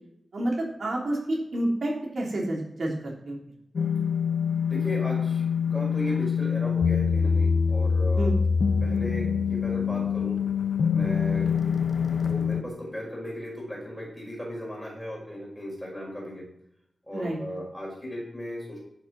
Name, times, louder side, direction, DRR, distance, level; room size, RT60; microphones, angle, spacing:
voice 1, 0.3-3.4 8.2-8.3 17.1-17.4, right 1 dB, 55° right, -3 dB, 3.3 m, -29 dB
sound 1, 3.8-12.6, left 6 dB, 70° left, 0.8 m, -25 dB
voice 2, 4.7-5.4 5.7-8.3 8.8-10.4 10.9-11.5 12.2-16.4 17.0-18.8, equal, 5° left, -4 dB, 5.4 m, -36 dB
11.5 x 7.4 x 6.2 m, 0.76 s
wide cardioid pair, 175°, 0 cm